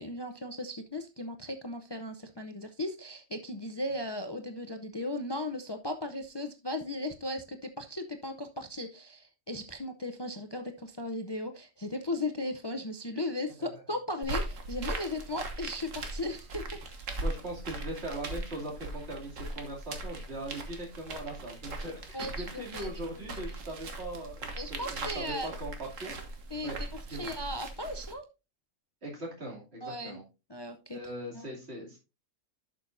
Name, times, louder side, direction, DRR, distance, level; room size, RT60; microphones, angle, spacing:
voice 1, 0.0-16.8 22.1-22.9 23.3-23.4 24.6-25.5 26.5-28.3 29.8-30.2 30.5-31.0 31.3-31.5, left 1 dB, 30° left, 7 dB, 0.5 m, -37 dB
sound 1, 14.2-28.1, right 2 dB, 70° right, 1.7 m, -39 dB
voice 2, 17.2-26.1 26.6-26.8 27.1-27.3 29.0-30.2 30.9-32.0, right 1 dB, 50° right, -2 dB, 3.0 m, -40 dB
11.5 x 6.2 x 2.6 m, 0.27 s
omnidirectional pair, 1.4 m